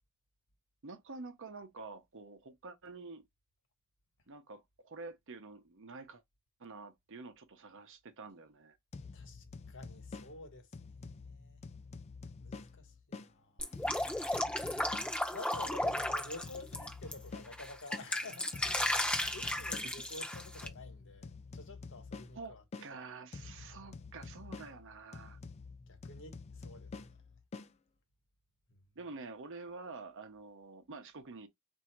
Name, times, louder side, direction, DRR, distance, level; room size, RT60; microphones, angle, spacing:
voice 1, 0.8-3.2 4.3-6.2 6.6-8.8 22.3-25.4 29.0-31.5, right 3 dB, 60° right, 0.8 m, -48 dB
sound 1, 8.9-13.3 13.7-18.1 18.5-22.9 23.3-27.7, left 4 dB, 30° left, 0.4 m, -49 dB
voice 2, 9.1-11.6 12.4-13.8 15.3-22.6 22.9-23.0 23.7-24.0 25.9-27.2 28.7-28.8, left 2 dB, 60° left, 1.2 m, -51 dB
Drip, 13.6-17.1 17.5-20.7, left 1 dB, 5° left, 0.7 m, -34 dB
3.7 x 2.7 x 4.4 m
head